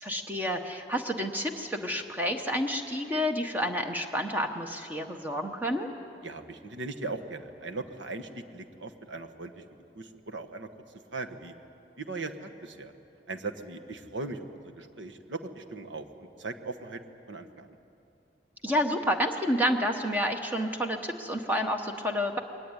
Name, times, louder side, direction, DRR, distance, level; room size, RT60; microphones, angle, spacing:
voice 1, 0.0-5.9 18.6-22.4, equal, 10° right, 3 dB, 1.0 m, -29 dB
voice 2, 6.2-9.6 9.9-10.7 11.1-11.5 12.0-12.9 13.3-17.0 17.3-17.7, right 3 dB, 90° right, 6 dB, 1.4 m, -39 dB
22.0 x 18.0 x 9.8 m, 2.7 s
head